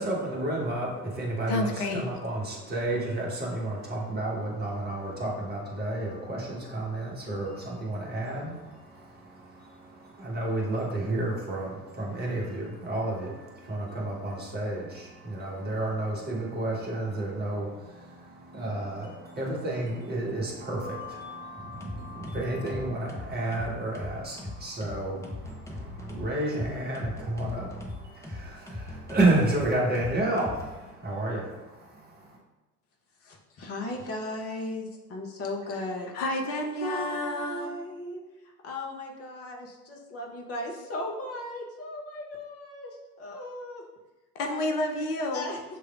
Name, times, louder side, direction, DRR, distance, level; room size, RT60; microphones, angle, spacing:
voice 1, 0.0-32.4, right 2 dB, 20° right, -3 dB, 1.3 m, -31 dB
voice 2, 1.5-2.1 36.1-37.7 44.3-45.5, left 1 dB, 70° left, 3 dB, 0.7 m, -30 dB
sound 1, 21.1-21.4 21.8-30.7, left 1 dB, 5° left, 0.7 m, -39 dB
voice 3, 33.2-36.1 36.8-38.2 38.6-42.9 43.2-43.8 44.4-44.7 45.3-45.6, left 2 dB, 30° left, 0 dB, 0.9 m, -36 dB
6.7 x 3.2 x 2.4 m, 1.1 s
figure-of-eight pair, 70°, 46 cm